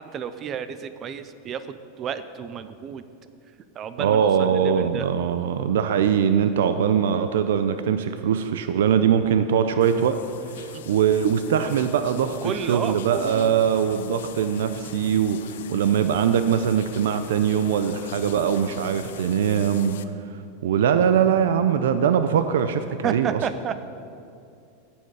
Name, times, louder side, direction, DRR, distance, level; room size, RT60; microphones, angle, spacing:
voice 1, 0.0-3.0 3.8-5.1 10.7-10.9 12.4-13.6 23.0-23.8, right 7 dB, 20° right, 12 dB, 0.5 m, -32 dB
voice 2, 4.0-10.2 10.5-23.4, right 8 dB, 85° right, 9 dB, 0.6 m, -22 dB
sound 1, 9.8-20.0, left 10 dB, 75° left, 0.5 m, -42 dB
16.5 x 7.2 x 4.8 m, 2.5 s
supercardioid pair, 175°, 0 cm